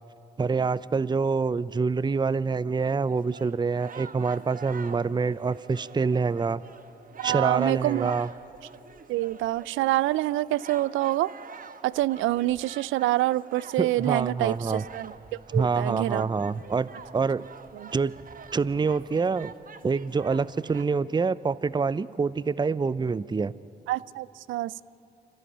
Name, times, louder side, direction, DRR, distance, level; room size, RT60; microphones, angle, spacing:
voice 1, 0.4-6.6 7.2-8.3 13.8-14.8 15.5-17.4 17.9-18.1 18.5-19.5 19.8-23.5, right 4 dB, 20° right, 18 dB, 0.6 m, -26 dB
sound 1, 2.8-20.8, right 5 dB, 40° right, 1.4 m, -46 dB
voice 2, 7.2-8.2 9.1-11.3 11.8-15.1 15.5-16.3 17.8-17.9 23.9-24.8, right 16 dB, 70° right, 21 dB, 0.5 m, -26 dB
27.5 x 14.5 x 10.0 m, 2.8 s
hypercardioid pair, 45°, 21 cm